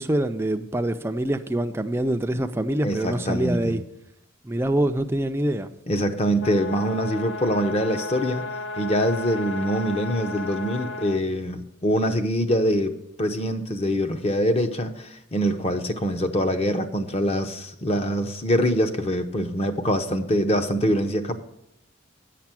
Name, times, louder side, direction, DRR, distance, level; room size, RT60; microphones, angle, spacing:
voice 1, 0.0-3.8 4.4-5.7, right 1 dB, 10° right, 0.4 m, -25 dB
voice 2, 2.8-3.8 5.9-8.4 8.8-21.3, equal, 30° left, 0.7 m, -24 dB
sound 1, 6.4-11.2, left 3 dB, 60° left, 0.8 m, -34 dB
8.9 x 5.9 x 7.5 m
head